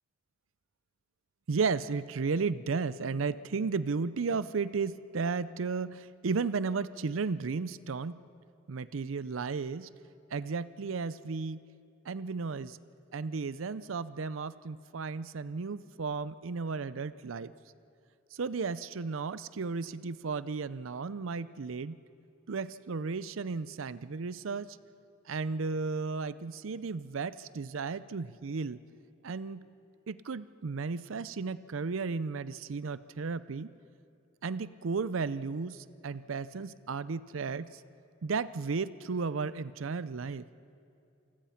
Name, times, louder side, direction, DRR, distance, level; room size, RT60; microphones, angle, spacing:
voice 1, 1.5-8.2 8.7-9.9 10.3-11.6 12.1-12.8 13.1-17.5 18.4-22.0 22.5-24.7 25.3-28.8 29.2-29.6 30.1-33.7 34.4-37.7 38.2-40.4, right 4 dB, 75° right, 16 dB, 0.5 m, -34 dB
28.0 x 20.5 x 5.8 m, 2.5 s
head